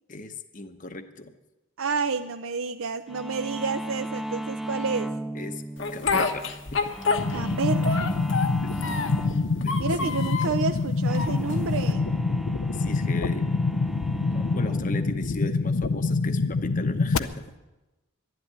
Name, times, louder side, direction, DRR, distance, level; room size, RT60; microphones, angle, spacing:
voice 1, 0.1-1.4 5.3-5.6 5.9-6.8 9.6-10.1 12.7-13.5 14.3-17.5, left 2 dB, 40° left, 8 dB, 0.9 m, -37 dB
voice 2, 1.8-5.1 7.3-8.1 9.8-12.1, right 5 dB, 70° right, 7 dB, 0.6 m, -30 dB
sound 1, 3.1-17.5, equal, ahead, 0.4 m, -37 dB
Speech, 5.8-7.5 7.8-9.2 9.6-10.6 11.1-11.9, left 4 dB, 60° left, 1.1 m, -28 dB
sound 2, 7.2-17.2, left 3 dB, 90° left, 0.7 m, -26 dB
12.0 x 11.0 x 10.0 m, 1.1 s
head